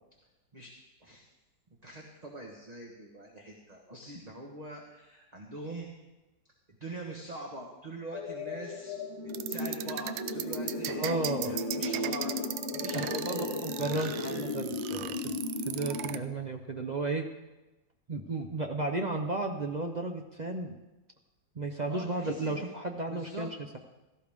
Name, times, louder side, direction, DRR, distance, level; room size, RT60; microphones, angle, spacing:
voice 1, 1.8-5.9 6.8-9.0 9.2-12.3 12.7-14.7 21.9-22.7 23.1-23.5, right 1 dB, 25° right, 0 dB, 1.2 m, -44 dB
sound 1, 8.1-16.2, left 2 dB, 30° left, 0.5 m, -36 dB
sound 2, 9.3-16.2, right 12 dB, 75° right, 1.3 m, -37 dB
voice 2, 11.0-11.6 12.9-15.4 15.6-17.3 18.1-20.7 21.5-23.8, right 2 dB, 50° right, 3 dB, 0.5 m, -34 dB
17.0 x 14.0 x 3.6 m, 1.1 s
omnidirectional pair, 2.1 m